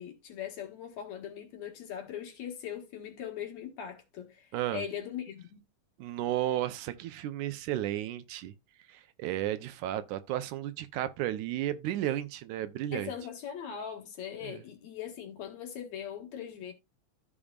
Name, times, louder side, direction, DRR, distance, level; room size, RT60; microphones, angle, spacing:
voice 1, 0.0-5.6 12.9-16.7, left 8 dB, 65° left, 2.9 m, -40 dB
voice 2, 4.5-4.8 6.0-8.5 8.9-13.1 14.4-14.6, right 13 dB, 85° right, 2.3 m, -33 dB
14.0 x 4.9 x 2.4 m
omnidirectional pair, 3.4 m